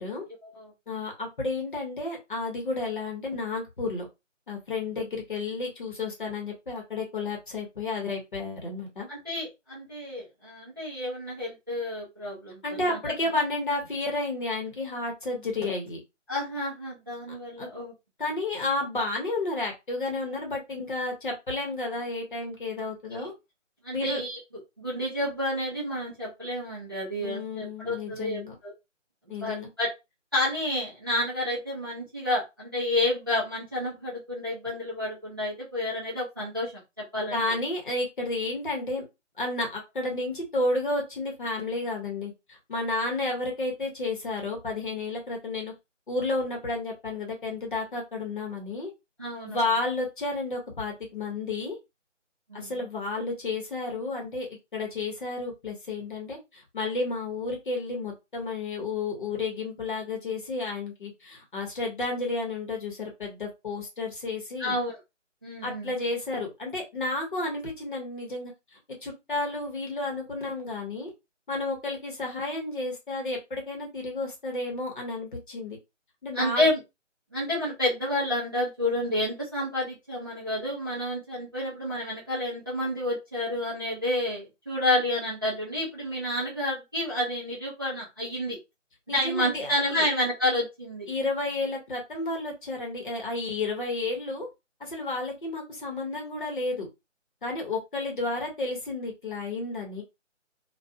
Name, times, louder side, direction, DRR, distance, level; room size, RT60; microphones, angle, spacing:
voice 1, 0.9-4.1 4.5-9.1 12.6-16.0 17.6-17.7 18.2-23.3 23.9-24.2 27.2-28.5 29.3-29.7 37.3-39.0 39.4-45.7 46.1-48.9 49.4-51.8 52.5-64.8 65.6-71.1 71.5-75.8 76.2-76.7 89.1-90.1 91.1-94.5 94.8-96.9 97.4-100.0, left 2 dB, 40° left, 1 dB, 1.0 m, -31 dB
voice 2, 9.1-13.0 16.3-17.9 23.8-24.4 24.8-28.7 29.4-29.9 30.3-36.7 37.1-37.4 49.2-49.6 52.5-52.7 64.6-65.0 65.4-65.9 76.3-76.8 77.3-88.6 89.1-91.1, left 1 dB, 20° right, -8 dB, 0.6 m, -30 dB
2.5 x 2.3 x 2.5 m, 0.24 s
figure-of-eight pair, 160°, 38 cm